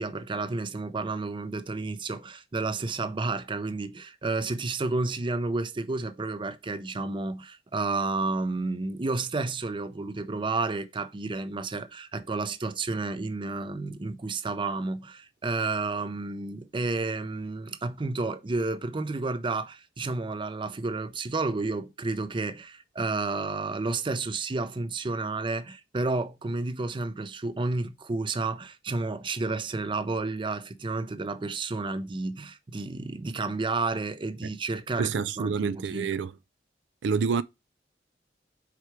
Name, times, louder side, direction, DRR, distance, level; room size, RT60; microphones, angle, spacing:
voice 1, 0.0-36.1, right 3 dB, 30° right, 0.5 m, -31 dB
voice 2, 35.0-36.3 37.0-37.4, right 5 dB, 90° right, 0.4 m, -28 dB
4.9 x 4.4 x 4.7 m
head